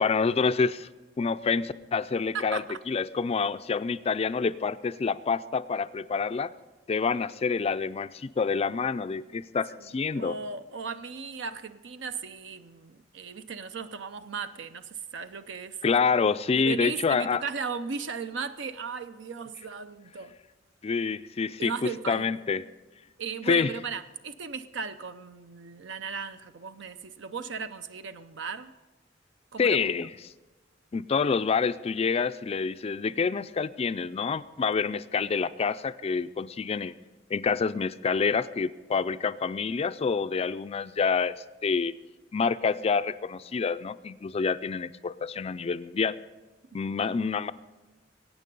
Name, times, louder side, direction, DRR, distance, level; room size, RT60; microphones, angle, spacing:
voice 1, 0.0-0.9 1.2-6.5 6.9-10.4 15.8-17.4 20.8-22.6 23.5-23.7 29.6-30.1 30.9-36.9 37.3-41.3 41.6-41.9 42.3-46.2 46.7-47.5, left 5 dB, 30° left, 13 dB, 0.4 m, -27 dB
voice 2, 2.3-2.8 9.8-9.9 10.2-15.8 16.6-20.4 21.6-22.3 23.2-28.7 29.5-29.8, right 5 dB, 70° right, 11 dB, 0.6 m, -36 dB
22.5 x 9.1 x 5.3 m, 1.2 s
head